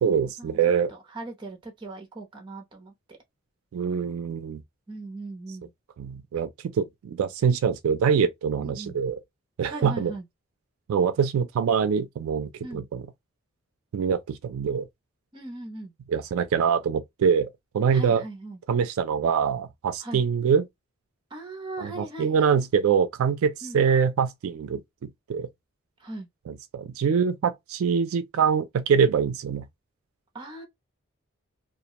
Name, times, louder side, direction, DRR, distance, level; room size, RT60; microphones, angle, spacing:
voice 1, 0.0-0.9 3.7-4.6 6.0-9.2 9.6-10.1 10.9-13.0 13.9-14.9 16.1-17.5 17.7-18.2 18.7-20.6 21.8-24.8 25.3-25.5 26.5-29.7, right 6 dB, 80° right, 0.3 m, -24 dB
voice 2, 0.9-3.2 4.9-5.7 8.6-9.0 9.7-10.2 12.6-12.9 15.3-15.9 17.9-18.6 20.0-20.2 21.3-22.6 23.6-23.8 26.0-26.3 30.3-30.6, right 2 dB, 20° right, 0.7 m, -39 dB
2.4 x 2.1 x 2.8 m
head